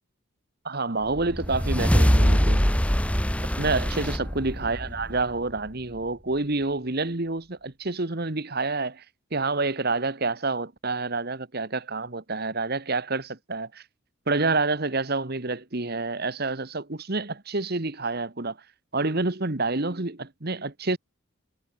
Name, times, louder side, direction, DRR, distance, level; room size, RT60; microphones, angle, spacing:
voice 1, 0.6-2.6 3.6-9.0 9.3-13.8 14.3-18.6 18.9-21.0, right 3 dB, 45° right, 1.4 m, -28 dB
sound 1, 1.1-5.7, equal, 5° left, 1.3 m, -23 dB
head